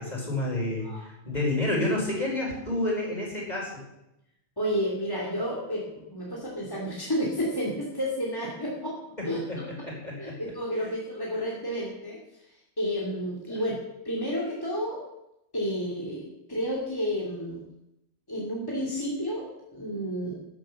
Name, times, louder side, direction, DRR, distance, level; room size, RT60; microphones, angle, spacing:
voice 1, 0.0-3.7 9.5-10.3 10.8-10.9, left 1 dB, 40° left, -2 dB, 5.3 m, -29 dB
voice 2, 4.6-5.8 6.1-9.0 9.2-9.6 10.2-12.2 12.5-13.7 14.0-15.0 15.5-17.6 18.3-19.5 19.7-20.3, equal, 20° left, -4 dB, 2.9 m, -31 dB
13.5 x 12.0 x 6.6 m, 0.86 s
omnidirectional pair, 1.1 m